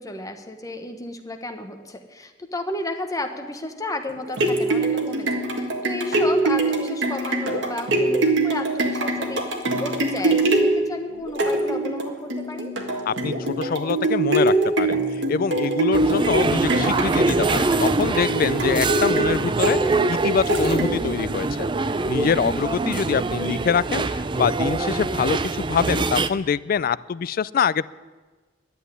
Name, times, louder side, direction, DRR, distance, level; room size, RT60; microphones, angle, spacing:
voice 1, 0.0-12.7 22.6-22.8, left 2 dB, 20° left, 5 dB, 1.1 m, -33 dB
sound 1, 4.1-21.2 21.7-21.8, right 2 dB, 80° right, 1.7 m, -24 dB
voice 2, 13.1-15.0 15.3-21.7 22.1-27.9, left 6 dB, 50° left, 19 dB, 0.3 m, -25 dB
sound 2, 15.9-26.3, right 3 dB, 25° right, 0.5 m, -24 dB
11.5 x 8.2 x 9.7 m, 1.3 s
head